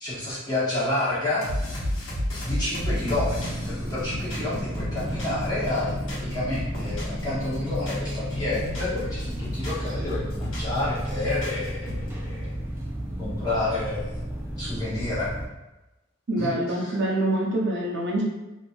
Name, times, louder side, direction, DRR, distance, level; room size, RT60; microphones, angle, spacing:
voice 1, 0.0-1.8 2.4-12.5 13.2-14.2 14.6-15.3 16.4-16.9, left 2 dB, 20° left, -10 dB, 1.1 m, -30 dB
sound 1, 1.4-5.5 5.7-7.2 7.5-9.0 9.3-10.8 11.1-12.1, left 1 dB, 75° left, 1.1 m, -32 dB
sound 2, 2.7-15.5, equal, 10° right, 0.3 m, -32 dB
voice 2, 16.3-18.2, right 1 dB, 60° right, -3 dB, 0.6 m, -25 dB
3.1 x 2.6 x 2.6 m, 1.0 s
head